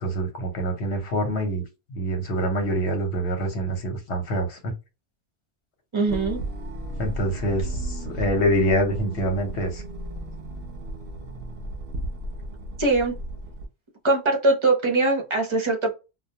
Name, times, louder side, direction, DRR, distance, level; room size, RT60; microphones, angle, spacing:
voice 1, 0.0-1.6 1.9-4.6 7.0-9.8, equal, 80° left, 5 dB, 1.1 m, -25 dB
voice 2, 5.9-6.4 12.8-13.1 14.0-15.9, right 2 dB, 30° right, 1 dB, 0.6 m, -22 dB
sound 1, 6.1-13.7, right 1 dB, 65° right, 0.8 m, -34 dB
2.3 x 2.2 x 2.7 m, 0.28 s
omnidirectional pair, 1.1 m